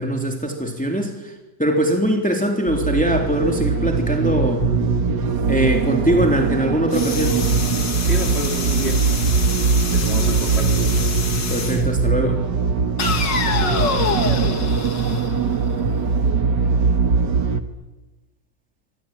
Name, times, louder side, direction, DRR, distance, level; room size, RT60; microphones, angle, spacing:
voice 1, 0.0-1.3 1.6-4.7 5.5-7.4 11.5-12.4, equal, 5° left, 2 dB, 3.3 m, -21 dB
sound 1, 2.7-17.6, right 5 dB, 60° right, 2.1 m, -21 dB
sound 2, 6.9-11.9 13.0-15.9, left 5 dB, 65° left, 2.8 m, -27 dB
voice 2, 8.1-9.0 9.9-10.8 13.5-14.0, right 1 dB, 30° right, 6 dB, 3.4 m, -29 dB
26.0 x 24.5 x 9.2 m, 1.1 s
omnidirectional pair, 2.1 m